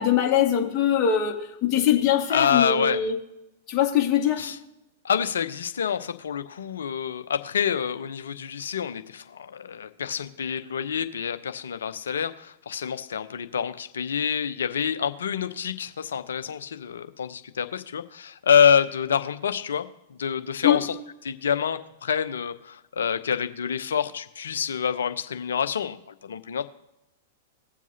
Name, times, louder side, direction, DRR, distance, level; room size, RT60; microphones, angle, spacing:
voice 1, 0.0-3.2 3.7-4.4 20.6-20.8, left 9 dB, 35° left, 0 dB, 2.2 m, -22 dB
voice 2, 2.3-3.0 4.4-4.6 5.0-20.9 21.2-26.6, left 7 dB, 75° left, 10 dB, 0.8 m, -27 dB
19.5 x 7.3 x 2.8 m, 0.92 s
figure-of-eight pair, 100°, 0 cm